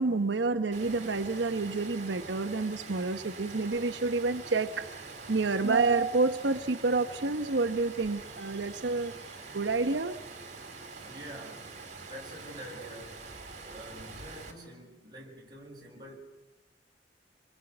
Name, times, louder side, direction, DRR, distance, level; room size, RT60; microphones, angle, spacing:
voice 1, 0.0-9.1 9.5-10.2, right 3 dB, 85° right, 7 dB, 0.9 m, -29 dB
Water, 0.7-14.5, right 3 dB, 45° right, 3.8 m, -45 dB
voice 2, 11.0-13.3 13.6-16.1, equal, 25° right, -2 dB, 6.4 m, -47 dB
27.0 x 21.0 x 7.9 m, 1.0 s
head